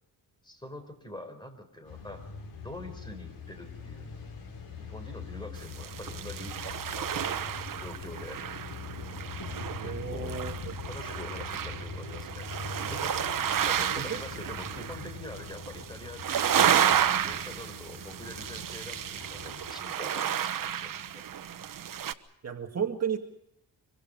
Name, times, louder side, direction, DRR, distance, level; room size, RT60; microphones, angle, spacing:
voice 1, 0.4-2.2 2.6-4.2 4.8-7.3 7.7-8.4 9.8-10.4 10.9-12.5 12.9-16.3 16.5-21.2, left 1 dB, 10° left, 7 dB, 4.5 m, -45 dB
sound 1, 1.8-19.7, left 5 dB, 75° left, 6.9 m, -42 dB
sound 2, 5.6-22.1, right 9 dB, 60° right, 1.2 m, -31 dB
voice 2, 9.8-10.7 14.0-14.2 22.4-23.2, right 7 dB, 40° right, 3 dB, 2.0 m, -33 dB
25.5 x 24.0 x 5.4 m, 0.78 s
wide cardioid pair, 140°, 37 cm